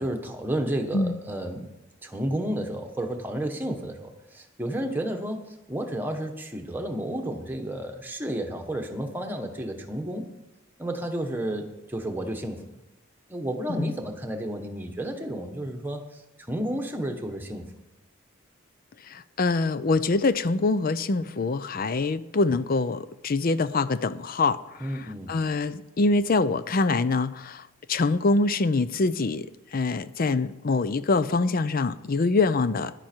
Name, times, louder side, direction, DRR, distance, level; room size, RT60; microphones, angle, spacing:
voice 1, 0.0-1.7 2.0-5.4 5.7-10.3 10.8-12.6 13.3-16.0 16.5-17.6 24.8-25.3, right 1 dB, 10° right, 3 dB, 1.3 m, -31 dB
voice 2, 19.1-27.6 27.9-29.5 29.7-32.9, left 3 dB, 45° left, 15 dB, 0.5 m, -25 dB
13.5 x 10.5 x 4.5 m, 0.94 s
head